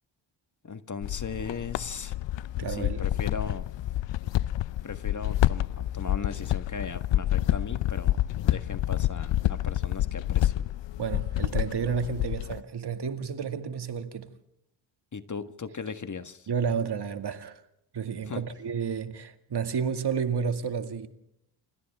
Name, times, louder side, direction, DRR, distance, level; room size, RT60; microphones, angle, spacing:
voice 1, 0.6-2.1 2.7-3.7 4.8-10.5 15.1-16.5 18.2-18.4, left 5 dB, 40° left, 1.7 m, -38 dB
sound 1, 1.0-12.6, left 14 dB, 65° left, 0.7 m, -28 dB
voice 2, 2.6-3.1 11.0-14.3 16.5-17.6 17.9-21.1, right 6 dB, 55° right, 2.2 m, -31 dB
29.0 x 26.0 x 3.6 m
supercardioid pair, 55°, 47 cm